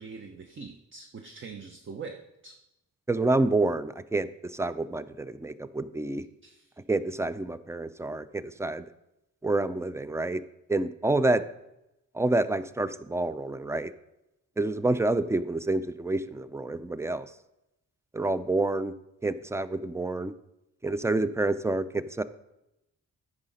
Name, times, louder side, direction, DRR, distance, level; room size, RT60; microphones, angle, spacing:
voice 1, 0.0-2.6 6.4-6.7, right 5 dB, 35° right, 4 dB, 0.7 m, -43 dB
voice 2, 3.1-6.3 6.9-8.8 9.4-10.4 10.7-11.4 12.1-13.9 14.6-17.3 18.1-18.9 19.2-20.3 20.8-22.2, right 2 dB, 10° right, 14 dB, 0.3 m, -28 dB
9.7 x 4.9 x 5.2 m, 0.90 s
cardioid pair, 90°, 34 cm